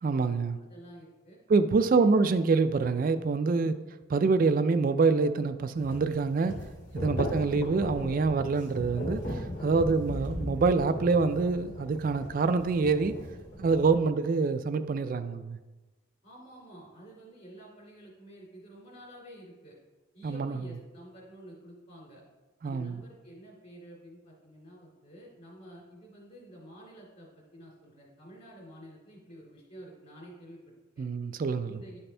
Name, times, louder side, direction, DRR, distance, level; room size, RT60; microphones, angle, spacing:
voice 1, 0.0-0.6 1.5-3.8 4.1-6.5 6.9-13.2 13.6-15.6 20.2-20.6 22.6-23.0 31.0-31.8, right 4 dB, 40° right, 11 dB, 0.3 m, -26 dB
voice 2, 0.6-1.4 1.8-2.1 7.0-7.3 16.2-19.8 20.1-22.2 22.6-31.1 31.6-32.0, right 1 dB, 40° left, -6 dB, 2.3 m, -50 dB
sound 1, 5.7-14.0, left 1 dB, 60° left, 2.1 m, -37 dB
11.0 x 4.2 x 3.3 m, 1.2 s
head